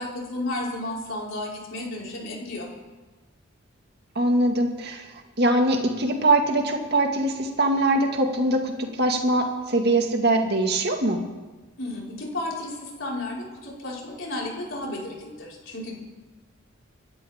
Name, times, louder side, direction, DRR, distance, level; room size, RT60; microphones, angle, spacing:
voice 1, 0.0-2.7 11.8-15.9, left 1 dB, 70° left, -4 dB, 5.1 m, -33 dB
voice 2, 4.2-11.3, right 1 dB, 55° right, 3 dB, 2.0 m, -22 dB
27.5 x 13.0 x 3.7 m, 1.2 s
head